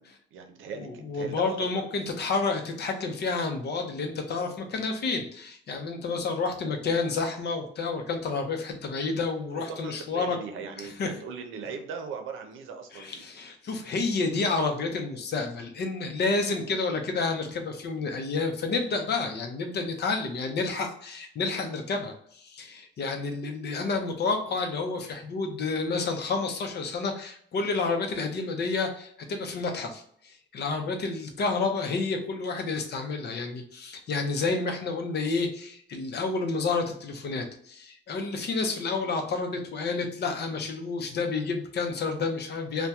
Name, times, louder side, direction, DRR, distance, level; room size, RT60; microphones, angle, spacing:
voice 1, 0.0-1.9 9.5-13.3, right 5 dB, 85° right, 5 dB, 0.6 m, -39 dB
voice 2, 0.8-10.4 10.8-11.1 12.9-42.9, left 4 dB, 55° left, 4 dB, 0.7 m, -30 dB
2.8 x 2.2 x 3.4 m, 0.63 s
cardioid pair, 90°, 20 cm